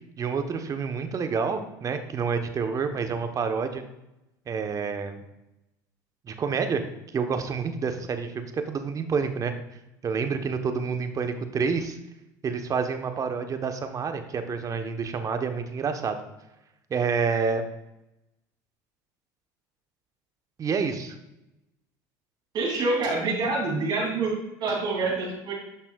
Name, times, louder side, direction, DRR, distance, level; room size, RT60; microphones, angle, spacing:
voice 1, 0.2-3.8 4.5-5.2 6.3-6.8 7.1-9.5 10.0-12.0 12.4-16.2 16.9-17.7 20.6-21.1, right 5 dB, 35° right, 7 dB, 1.0 m, -28 dB
voice 2, 22.5-24.3 24.6-25.5, right 3 dB, 50° right, -2 dB, 2.8 m, -26 dB
11.0 x 5.8 x 2.3 m, 0.92 s
supercardioid pair, 85°, 10 cm